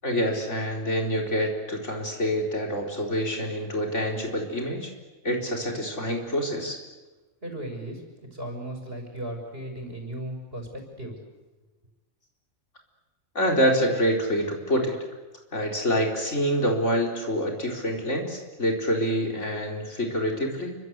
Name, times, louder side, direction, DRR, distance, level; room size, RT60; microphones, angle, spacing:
voice 1, 0.0-4.9 5.2-6.8 13.3-15.0 15.5-20.7, equal, 60° left, 1 dB, 4.7 m, -26 dB
voice 2, 7.4-8.0 8.3-11.2, right 1 dB, 45° right, 3 dB, 6.2 m, -36 dB
29.5 x 24.5 x 8.1 m, 1.2 s
omnidirectional pair, 1.4 m